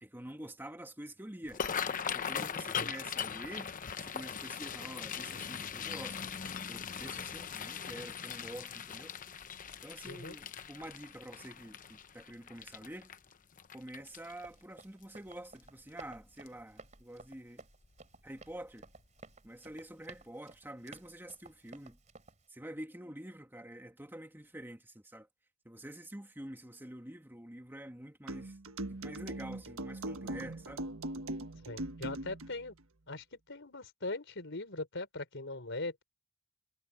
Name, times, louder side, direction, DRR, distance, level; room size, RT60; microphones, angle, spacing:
voice 1, 0.0-1.6 2.1-6.3 6.7-9.1 9.8-13.1 13.7-17.6 18.2-18.9 19.4-22.0 22.5-25.3 25.6-28.6 28.9-30.8, right 1 dB, 10° right, 2.2 m, -47 dB
sound 1, 1.4-14.6 15.0-15.3 15.6-16.1 16.5-16.6 17.8-18.0 18.4-18.5 19.0-19.1, left 7 dB, 40° left, 0.8 m, -40 dB
voice 2, 10.1-10.4 31.7-32.7 33.1-36.0, left 2 dB, 60° left, 4.8 m, -40 dB
Run, 14.0-22.5, right 3 dB, 35° right, 3.2 m, -55 dB
sound 2, 28.3-32.5, right 1 dB, 80° right, 1.5 m, -40 dB
head